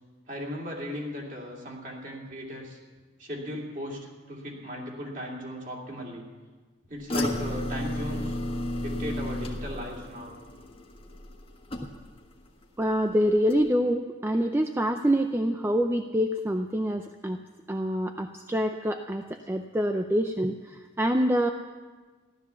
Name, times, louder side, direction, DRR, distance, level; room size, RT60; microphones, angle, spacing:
voice 1, 0.3-2.8 3.2-6.3 6.9-8.4 8.8-10.3, equal, 40° right, -2 dB, 2.8 m, -37 dB
sound 1, 7.1-12.3 12.6-13.1 13.5-13.6, left 1 dB, 25° left, 1.4 m, -33 dB
voice 2, 12.8-17.4 17.7-21.5, equal, 10° right, 5 dB, 0.4 m, -26 dB
15.5 x 12.0 x 7.0 m, 1.4 s
head